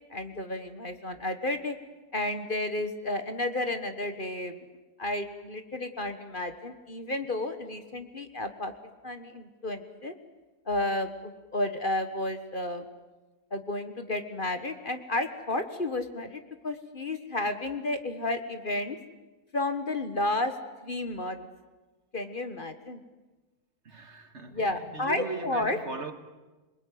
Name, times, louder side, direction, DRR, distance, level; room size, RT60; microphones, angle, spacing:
voice 1, 0.1-1.8 2.1-4.6 5.0-8.7 9.0-10.1 10.7-12.8 13.5-19.0 19.5-20.5 20.8-21.5 22.1-23.0 24.5-25.8, left 2 dB, 35° left, 1.6 m, -32 dB
voice 2, 23.9-26.1, right 4 dB, 50° right, 1.9 m, -39 dB
28.0 x 21.0 x 9.4 m
omnidirectional pair, 1.6 m